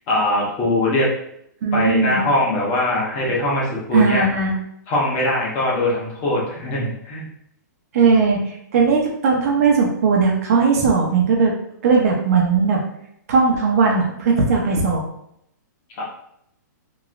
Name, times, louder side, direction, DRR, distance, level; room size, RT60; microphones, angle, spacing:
voice 1, 0.1-1.1 1.7-4.2 4.9-7.2 16.0-16.1, left 1 dB, 30° left, -5 dB, 1.1 m, -21 dB
voice 2, 1.6-2.2 3.9-4.5 7.9-11.5 11.8-12.8 13.3-15.0, right 4 dB, 50° right, -1 dB, 0.7 m, -18 dB
3.0 x 2.7 x 2.5 m, 0.73 s
hypercardioid pair, 155°, 10 cm